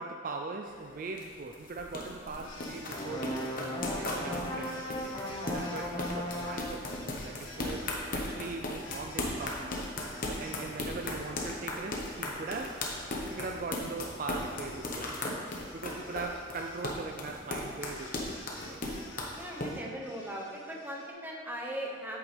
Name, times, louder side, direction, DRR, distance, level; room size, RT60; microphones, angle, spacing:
voice 1, 0.0-4.8 5.5-9.8 10.3-12.9 13.3-15.1 15.7-18.3 18.6-18.8, right 3 dB, 40° right, 3 dB, 0.3 m, -40 dB
sound 1, 0.7-19.7, left 2 dB, 45° left, 1.1 m, -37 dB
sound 2, 2.4-10.7 11.0-21.1, left 2 dB, 70° left, 1.7 m, -51 dB
sound 3, 2.9-6.9, left 1 dB, 20° left, 0.9 m, -37 dB
voice 2, 19.3-22.2, equal, 10° right, -2 dB, 0.9 m, -39 dB
8.6 x 8.1 x 3.3 m, 2.1 s
head